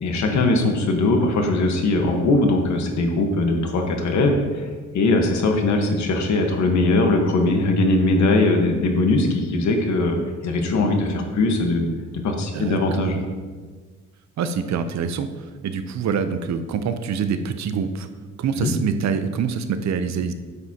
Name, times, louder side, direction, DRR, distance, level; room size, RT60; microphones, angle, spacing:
voice 1, 0.0-4.7 4.9-11.9 12.2-13.2 18.6-18.7, left 2 dB, 65° left, 3 dB, 1.4 m, -20 dB
voice 2, 12.5-13.3 14.4-18.1 18.4-20.3, right 6 dB, 65° right, 9 dB, 0.7 m, -25 dB
9.7 x 7.1 x 2.9 m, 1.4 s
cardioid pair, 90°, 30 cm